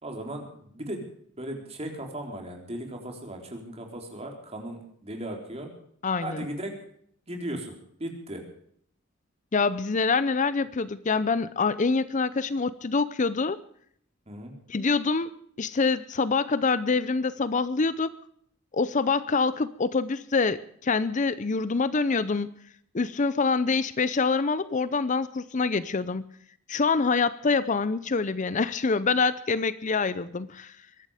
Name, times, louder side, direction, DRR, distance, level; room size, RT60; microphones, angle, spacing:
voice 1, 0.0-1.1 1.4-5.7 6.2-6.7 7.3-8.4 14.3-14.5, right 1 dB, 30° right, 2 dB, 3.8 m, -37 dB
voice 2, 6.0-6.5 9.5-13.6 14.7-15.3 15.6-18.2 18.7-22.5 22.9-26.3 26.7-30.7, left 4 dB, 40° left, 16 dB, 0.6 m, -25 dB
23.0 x 12.0 x 5.0 m, 0.64 s
head